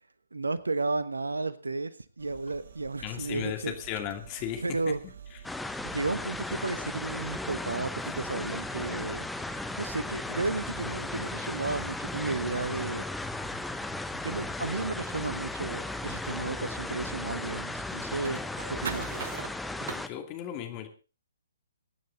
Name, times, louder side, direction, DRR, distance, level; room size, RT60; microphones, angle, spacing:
voice 1, 0.3-3.7 4.6-5.0 5.8-9.2 9.8-13.0 14.2-18.4 18.7-19.2, right 3 dB, 75° right, 15 dB, 1.2 m, -33 dB
sound 1, 2.2-20.0, right 6 dB, 60° right, 1.4 m, -47 dB
voice 2, 3.0-4.9 5.3-5.4 19.9-20.9, left 10 dB, 30° left, 6 dB, 2.5 m, -36 dB
sound 2, 5.4-20.1, left 2 dB, 5° left, 0.9 m, -36 dB
23.5 x 9.3 x 3.9 m, 0.34 s
figure-of-eight pair, 130°, 0 cm